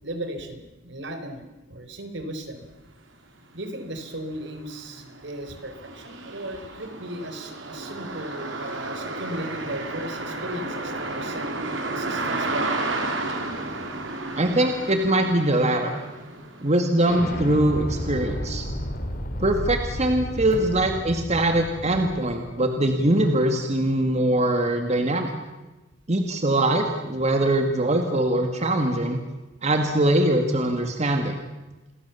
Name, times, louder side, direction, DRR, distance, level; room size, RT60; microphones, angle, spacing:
voice 1, 0.0-2.7 3.5-11.6 11.9-12.8 19.5-19.6 20.5-20.6, right 1 dB, 65° right, 8 dB, 4.3 m, -36 dB
sound 1, 3.4-3.5 3.9-16.8, right 2 dB, 80° right, 4.5 m, -32 dB
voice 2, 14.3-16.0 16.6-18.7 19.4-25.3 26.1-29.2 29.6-31.4, right 1 dB, 35° right, 5 dB, 2.1 m, -22 dB
Explosion, 17.0-22.5, equal, 50° left, 3.4 m, -32 dB
29.0 x 22.5 x 7.1 m, 1.1 s
head